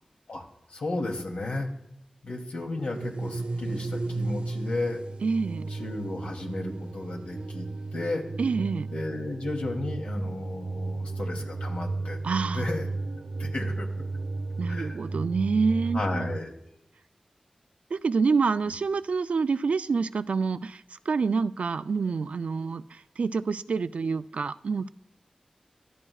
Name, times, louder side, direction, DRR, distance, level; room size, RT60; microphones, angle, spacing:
voice 1, 0.7-1.7 2.2-5.0 5.7-7.7 7.9-8.2 8.9-12.2 12.5-12.9 13.4-13.9 14.7-15.0 15.9-16.5, left 2 dB, 80° left, 1 dB, 2.7 m, -33 dB
sound 1, 2.7-16.4, right 3 dB, 60° right, 0.8 m, -34 dB
voice 2, 5.2-5.7 8.4-8.9 12.2-12.7 14.6-16.2 17.9-24.9, right 5 dB, 80° right, 12 dB, 0.4 m, -27 dB
25.5 x 11.0 x 2.4 m, 0.80 s
wide cardioid pair, 70°, 2 cm